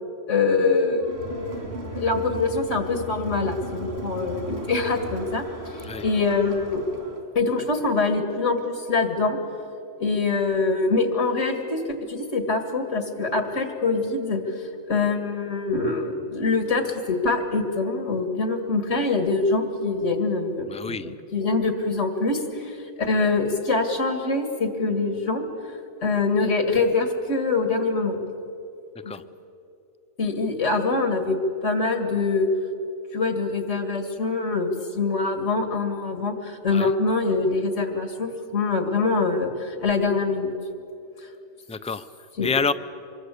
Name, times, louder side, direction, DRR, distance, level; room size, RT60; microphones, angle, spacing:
voice 1, 0.3-5.4 5.7-6.8 7.4-9.4 10.0-21.0 21.3-28.2 29.0-29.1 30.2-32.5 33.1-40.5 42.4-42.5, left 3 dB, 80° left, 7 dB, 2.3 m, -24 dB
Crowd, 1.0-7.3, right 1 dB, 60° right, 3.4 m, -36 dB
voice 2, 20.7-21.1 28.9-29.2 36.7-36.9 41.7-42.7, left 4 dB, 10° left, 12 dB, 0.4 m, -28 dB
25.5 x 22.5 x 8.3 m, 2.8 s
omnidirectional pair, 1.2 m